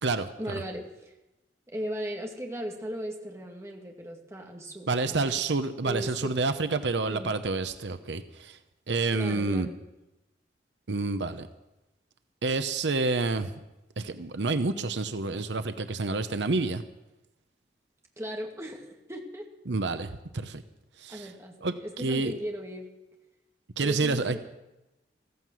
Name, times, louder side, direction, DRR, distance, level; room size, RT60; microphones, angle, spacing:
voice 1, 0.4-1.1 1.7-5.4 5.8-6.3 7.1-7.3 9.1-9.8 18.2-19.4 21.1-22.9 23.8-24.4, equal, 15° right, 1 dB, 2.2 m, -37 dB
voice 2, 4.9-8.6 8.9-9.7 10.9-11.5 12.4-13.5 14.0-16.8 19.7-20.6 21.0-21.3 21.6-22.3 23.8-24.4, right 3 dB, 85° right, 10 dB, 0.8 m, -28 dB
15.0 x 15.0 x 6.2 m, 0.97 s
head